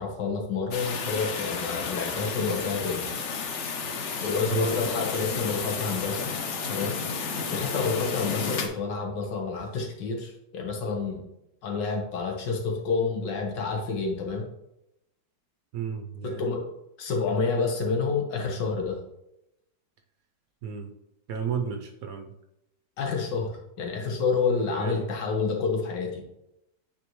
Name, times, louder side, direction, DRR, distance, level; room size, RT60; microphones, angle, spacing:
voice 1, 0.0-3.1 4.2-6.3 6.7-7.0 7.5-11.3 11.6-14.4 16.2-16.6 17.0-19.0 23.0-23.5 23.8-26.2, left 4 dB, 85° left, 2 dB, 1.8 m, -28 dB
sound 1, 0.7-8.7, left 5 dB, 55° left, 0.8 m, -32 dB
voice 2, 15.7-16.5 20.6-20.9 21.3-22.4 24.7-25.1, right 7 dB, 65° right, 5 dB, 0.9 m, -33 dB
9.1 x 4.3 x 3.1 m, 0.86 s
omnidirectional pair, 1.9 m